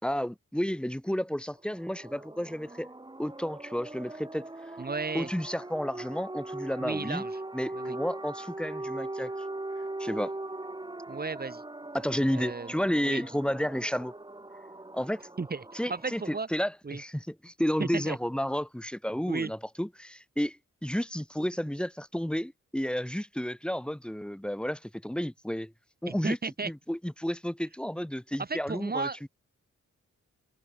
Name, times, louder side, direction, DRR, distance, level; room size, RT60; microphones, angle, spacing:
voice 1, 0.0-2.9 3.2-4.4 5.1-7.2 7.5-9.3 10.0-10.3 11.9-14.1 14.9-15.2 15.7-25.7 26.0-26.4 26.6-29.1, equal, 5° left, 6.1 m, -31 dB
sound 1, 1.6-16.4, right 2 dB, 15° right, 7.9 m, -40 dB
voice 2, 4.8-5.3 6.8-7.4 7.7-8.0 11.1-11.6 12.3-12.7 13.0-13.2 15.4-15.6 15.9-16.5 16.8-17.0 17.8-18.2 19.3-19.5 26.1-26.7 28.4-29.3, right 4 dB, 30° right, 3.6 m, -34 dB
wide cardioid pair, 140°, 29 cm